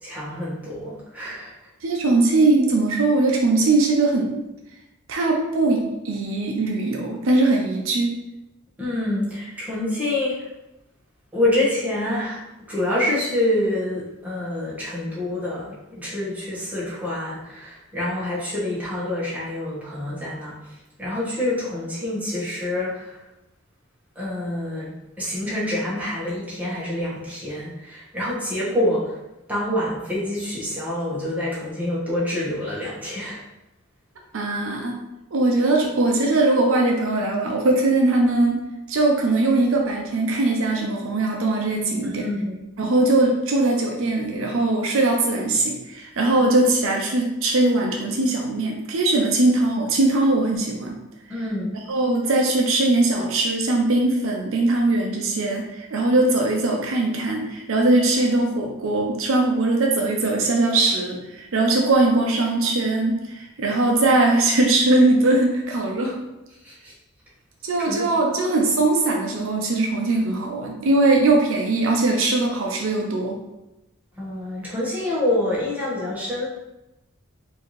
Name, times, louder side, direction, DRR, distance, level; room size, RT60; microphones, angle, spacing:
voice 1, 0.0-1.5 8.8-10.5 11.3-20.5 21.0-23.2 24.1-24.9 25.2-29.2 29.5-33.4 42.0-42.7 51.3-51.8 66.6-66.9 67.9-68.0 74.2-76.5, left 1 dB, 5° right, -8 dB, 1.2 m, -26 dB
voice 2, 1.8-4.4 5.1-8.2 34.3-35.0 35.3-38.6 38.9-42.2 42.8-51.0 51.9-66.3 67.7-73.4, right 2 dB, 65° right, 0 dB, 0.5 m, -20 dB
4.5 x 2.7 x 3.1 m, 0.95 s
head